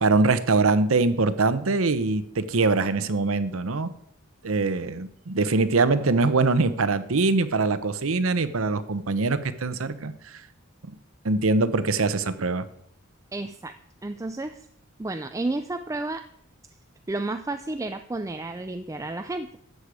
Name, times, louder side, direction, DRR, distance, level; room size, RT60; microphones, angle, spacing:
voice 1, 0.0-3.9 4.4-10.4 11.2-12.7, right 3 dB, 70° right, 13 dB, 0.8 m, -23 dB
voice 2, 13.3-13.7 14.0-14.6 15.0-16.2 17.1-19.5, right 2 dB, 15° right, 8 dB, 0.4 m, -31 dB
13.0 x 8.3 x 4.9 m, 0.70 s
head